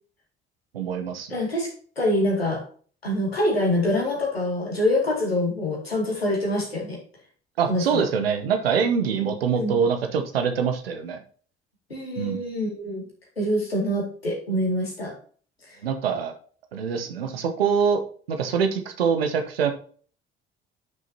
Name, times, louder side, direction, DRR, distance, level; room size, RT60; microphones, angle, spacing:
voice 1, 0.7-1.3 7.6-11.2 12.2-12.4 15.8-16.4 16.7-18.0 18.3-19.7, right 6 dB, 75° right, 6 dB, 1.1 m, -24 dB
voice 2, 1.3-1.7 2.0-2.6 3.0-7.0 7.7-8.1 9.2-9.3 9.5-9.8 11.9-13.0 13.4-15.1 15.7-15.8, left 1 dB, 85° left, -2 dB, 2.5 m, -25 dB
10.5 x 6.5 x 2.8 m, 0.43 s
figure-of-eight pair, 45°, 30 cm